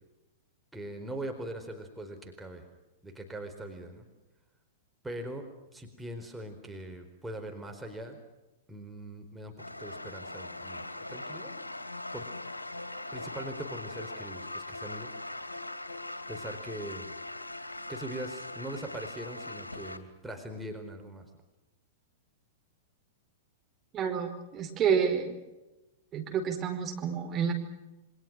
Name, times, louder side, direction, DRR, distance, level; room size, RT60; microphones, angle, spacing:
voice 1, 0.7-2.6 3.0-4.1 5.0-5.4 5.7-8.2 8.7-9.5 9.8-11.5 12.1-12.2 13.1-15.1 16.3-17.0 17.9-21.3, right 1 dB, 5° right, 3 dB, 4.3 m, -41 dB
sound 1, 9.6-20.0, left 2 dB, 85° left, 2.6 m, -41 dB
voice 2, 23.9-25.4 26.1-27.5, right 7 dB, 30° right, 5 dB, 4.7 m, -29 dB
28.5 x 25.5 x 6.3 m, 1.0 s
figure-of-eight pair, 100°, 0 cm